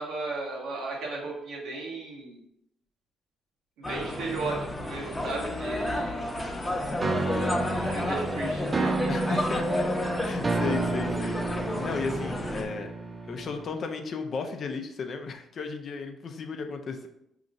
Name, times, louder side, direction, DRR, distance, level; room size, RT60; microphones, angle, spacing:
voice 1, 0.0-2.4 3.8-6.2 7.7-9.4, right 3 dB, 90° right, -2 dB, 1.1 m, -35 dB
sound 1, 3.8-12.6, left 1 dB, 10° left, 0.8 m, -31 dB
sound 2, 7.0-13.9, right 3 dB, 30° right, 0.3 m, -31 dB
voice 2, 9.1-9.9 10.2-12.9 13.3-17.1, left 4 dB, 55° left, 6 dB, 0.5 m, -34 dB
5.1 x 2.9 x 2.6 m, 0.79 s
cardioid pair, 90°, 0 cm